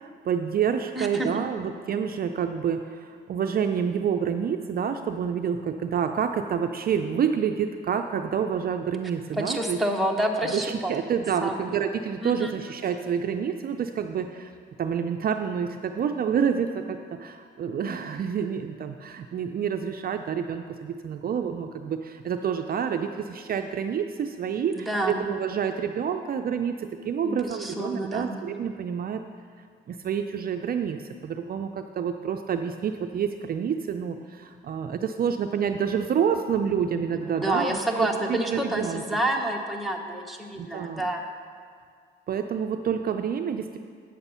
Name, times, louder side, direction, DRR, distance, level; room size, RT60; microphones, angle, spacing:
voice 1, 0.0-9.8 10.5-14.5 14.8-29.2 29.9-37.8 38.5-39.0 40.6-41.0 42.3-43.8, right 7 dB, 50° right, 6 dB, 0.5 m, -28 dB
voice 2, 0.9-1.3 9.4-10.9 11.4-11.6 12.2-12.5 24.7-25.2 27.2-28.4 37.3-41.2, right 1 dB, ahead, 0 dB, 1.1 m, -28 dB
8.8 x 7.0 x 5.6 m, 2.1 s
cardioid pair, 90°, 20 cm